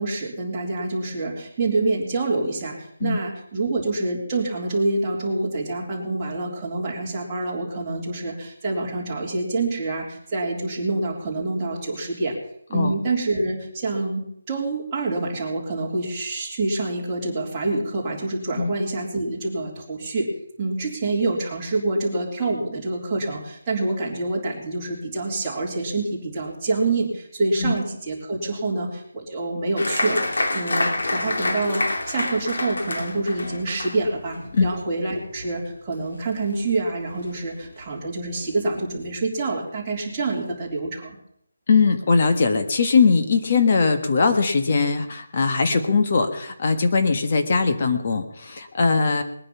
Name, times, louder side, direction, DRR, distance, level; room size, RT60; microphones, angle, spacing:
voice 1, 0.0-12.4 12.7-20.3 20.6-41.2, right 2 dB, 15° right, -5 dB, 3.4 m, -26 dB
Applause, 29.8-36.8 37.1-37.8 38.2-38.3 38.6-39.1, left 2 dB, 85° left, 2.8 m, -28 dB
voice 2, 41.7-49.2, left 4 dB, 35° left, 6 dB, 1.4 m, -20 dB
20.5 x 9.6 x 5.7 m, 0.70 s
figure-of-eight pair, 175°, 0 cm